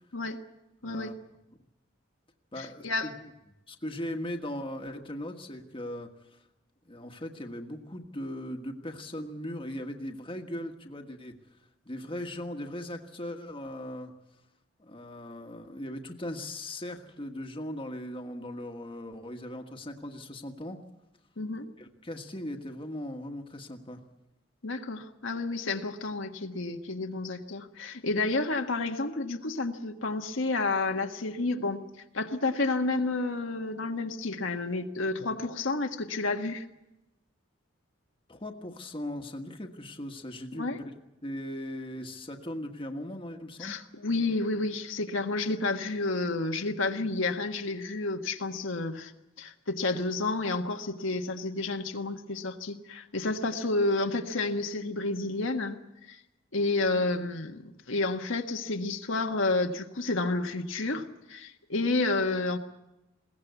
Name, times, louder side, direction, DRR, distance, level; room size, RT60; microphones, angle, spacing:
voice 1, 0.8-1.1 2.5-3.3 3.7-6.4 6.9-11.3 11.8-14.1 14.8-20.8 21.8-24.0 38.3-41.0 41.2-43.8, left 1 dB, 25° left, 4 dB, 1.5 m, -39 dB
voice 2, 2.6-3.1 21.4-21.7 24.6-31.8 32.1-36.6 40.5-40.8 43.6-49.1 49.4-55.8 56.1-56.2 56.5-62.6, left 3 dB, 75° left, 4 dB, 1.5 m, -30 dB
21.5 x 17.5 x 8.2 m, 0.96 s
head